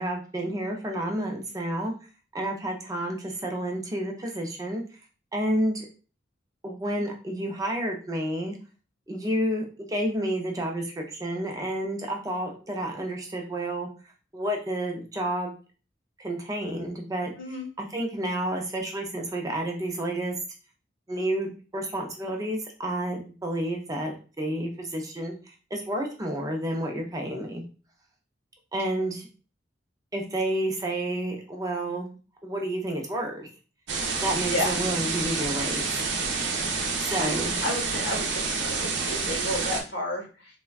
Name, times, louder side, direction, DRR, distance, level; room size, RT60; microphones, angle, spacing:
voice 1, 0.0-1.9 2.3-4.8 5.3-5.9 6.6-8.6 9.1-13.9 14.3-15.6 16.2-17.3 17.8-20.4 21.1-25.3 25.7-27.6 28.7-29.3 30.1-32.1 32.4-33.5 34.2-36.0 37.0-37.6, right 1 dB, 20° right, 1 dB, 0.4 m, -30 dB
sound 1, 33.9-39.8, right 4 dB, 70° right, 0.5 m, -28 dB
voice 2, 37.2-40.6, left 1 dB, 75° left, 1 dB, 1.0 m, -32 dB
3.3 x 2.1 x 2.3 m, 0.36 s
head